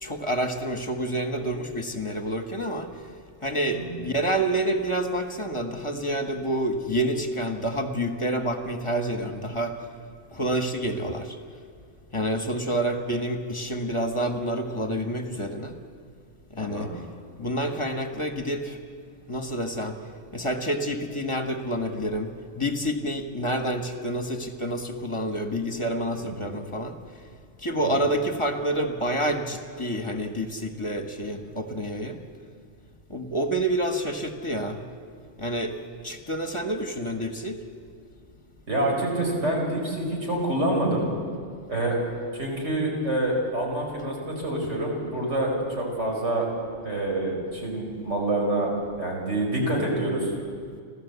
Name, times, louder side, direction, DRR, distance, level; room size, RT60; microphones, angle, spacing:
voice 1, 0.0-2.9 3.4-9.7 10.3-11.3 12.1-15.7 16.5-16.9 17.4-18.8 19.3-19.9 20.3-22.3 22.6-26.9 27.6-32.2 33.1-34.8 35.4-35.7 36.0-37.6, right 1 dB, 25° left, 6 dB, 1.4 m, -28 dB
voice 2, 38.7-41.1 41.7-42.0 42.3-45.5 45.8-46.5 46.8-48.7 49.0-50.3, right 1 dB, 75° right, -1 dB, 5.3 m, -27 dB
30.0 x 13.5 x 8.2 m, 2.1 s
omnidirectional pair, 1.2 m